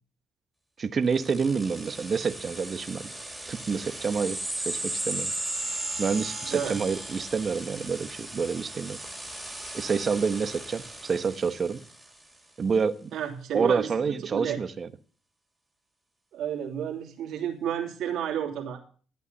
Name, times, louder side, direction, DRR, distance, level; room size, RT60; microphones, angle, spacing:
voice 1, 0.8-3.1 3.5-4.4 4.6-5.3 6.0-9.0 9.7-11.8 12.6-13.1 13.5-14.9, right 5 dB, 45° right, 12 dB, 1.1 m, -28 dB
sound 1, 1.1-12.2, right 1 dB, 5° right, 3.4 m, -36 dB
voice 2, 6.4-6.8 13.1-14.6 16.3-18.8, right 9 dB, 80° right, 2 dB, 3.0 m, -31 dB
12.5 x 8.3 x 6.8 m, 0.41 s
cardioid pair, 90°, 0 cm